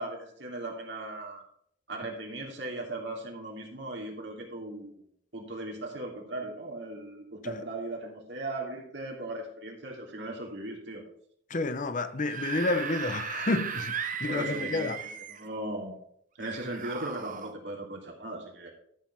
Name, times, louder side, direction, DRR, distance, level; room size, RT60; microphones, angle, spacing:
voice 1, 0.0-1.4 1.9-5.0 5.3-11.0 14.3-15.9 16.4-18.7, right 2 dB, 70° right, 2.9 m, -38 dB
voice 2, 11.5-15.0, left 2 dB, 45° left, 0.8 m, -30 dB
Screaming / Screech, 12.1-15.5 16.4-17.5, right 7 dB, 45° right, 0.9 m, -36 dB
12.5 x 6.4 x 4.6 m
head